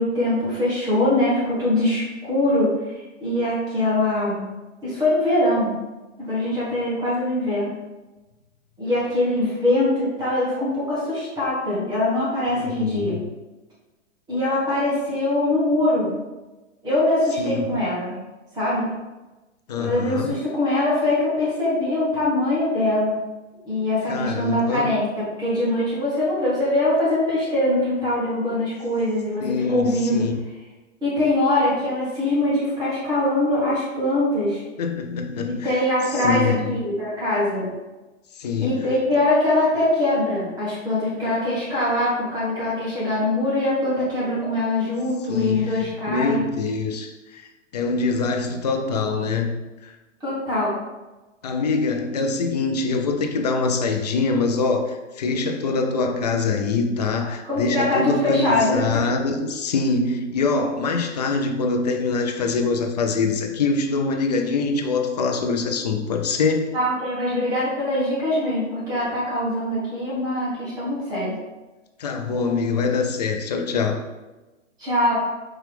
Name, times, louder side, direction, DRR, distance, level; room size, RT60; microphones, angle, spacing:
voice 1, 0.0-2.7 3.2-4.5 4.8-5.7 6.2-7.7 8.8-13.2 14.3-16.1 16.8-18.1 18.5-18.9 19.8-23.2 23.6-30.2 31.0-34.6 35.4-37.7 38.6-46.4 50.2-50.8 57.4-58.8 66.7-71.3 74.8-75.1, left 1 dB, 10° right, -9 dB, 1.2 m, -22 dB
voice 2, 12.5-13.3 17.4-17.9 19.7-20.3 24.1-24.9 29.4-30.4 34.8-35.8 36.1-36.8 38.3-39.0 45.3-47.5 47.7-49.9 51.4-66.8 72.0-74.0, left 4 dB, 35° left, 4 dB, 0.4 m, -24 dB
4.6 x 3.0 x 3.3 m, 1.1 s
hypercardioid pair, 155°, 38 cm